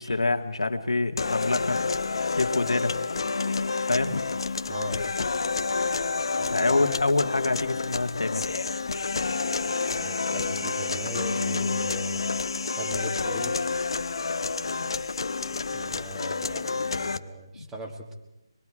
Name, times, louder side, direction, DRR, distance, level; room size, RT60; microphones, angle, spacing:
voice 1, 0.0-1.8 2.3-3.0 3.8-4.2 6.5-8.5 14.8-14.9 17.5-17.7, left 3 dB, 85° left, 5 dB, 1.8 m, -26 dB
sound 1, 1.2-17.2, left 4 dB, 60° left, 0.8 m, -29 dB
voice 2, 4.7-5.1 6.4-6.8 9.9-12.2 12.8-13.7 15.7-18.1, right 1 dB, 5° right, 1 dB, 1.6 m, -38 dB
25.5 x 21.5 x 4.9 m, 0.99 s
figure-of-eight pair, 165°, 3 cm